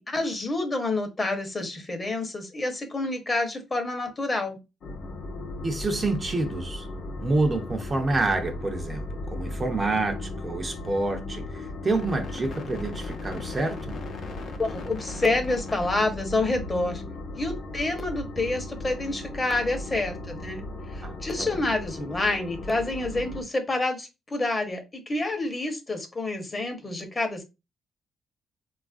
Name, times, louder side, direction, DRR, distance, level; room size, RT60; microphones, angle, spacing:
voice 1, 0.0-4.6 14.6-17.0 17.4-20.6 20.9-27.4, left 2 dB, 25° left, 0.8 m, -28 dB
sound 1, 4.8-23.4, left 2 dB, 60° left, 0.7 m, -36 dB
voice 2, 5.6-6.9 7.2-9.0 9.3-14.0 21.0-21.6, right 2 dB, 30° right, 0.5 m, -28 dB
3.1 x 2.4 x 2.4 m
cardioid pair, 90°, 0 cm